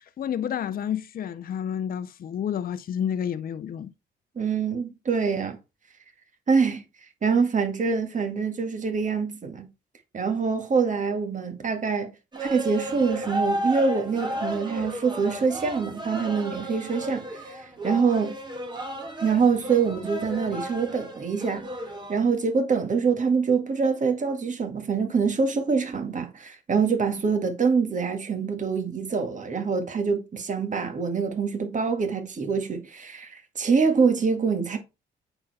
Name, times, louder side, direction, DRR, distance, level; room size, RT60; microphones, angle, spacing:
voice 1, 0.0-3.9, left 9 dB, 45° left, 0.6 m, -30 dB
voice 2, 4.4-5.6 6.5-6.8 7.2-9.7 10.1-12.1 12.4-18.4 19.2-21.6 22.1-34.8, right 5 dB, 40° right, 1.9 m, -25 dB
sound 1, 12.3-22.2, right 1 dB, 20° right, 1.9 m, -33 dB
8.8 x 4.3 x 4.2 m
cardioid pair, 90°, 20 cm